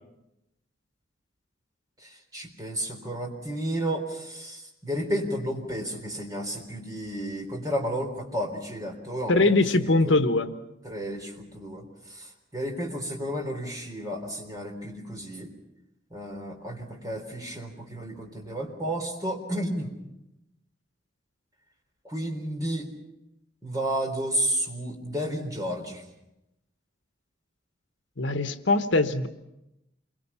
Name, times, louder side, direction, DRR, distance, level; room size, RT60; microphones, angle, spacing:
voice 1, 2.3-9.6 10.0-10.2 10.8-11.8 12.1-12.3 12.5-15.5 16.1-19.9 22.0-22.9 23.6-26.0, equal, 20° right, 2 dB, 3.8 m, -32 dB
voice 2, 9.3-10.6 28.2-29.3, left 2 dB, 75° left, 9 dB, 1.2 m, -22 dB
28.0 x 23.0 x 5.7 m, 0.90 s
head